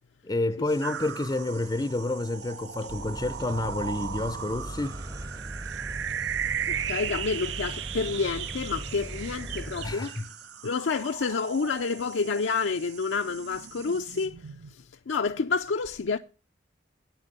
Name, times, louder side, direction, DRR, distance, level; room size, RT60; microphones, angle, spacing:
voice 1, 0.2-5.0 9.8-10.3, left 2 dB, 20° left, 0.5 m, -29 dB
sound 1, 0.7-14.3, right 9 dB, 60° right, 2.2 m, -47 dB
sound 2, 0.8-12.7 13.1-14.7, right 9 dB, 80° right, 0.5 m, -37 dB
sound 3, 2.9-9.9, right 1 dB, 20° right, 0.7 m, -39 dB
voice 2, 6.7-10.1 10.6-16.2, left 4 dB, 80° left, 0.5 m, -29 dB
9.1 x 9.0 x 6.6 m
head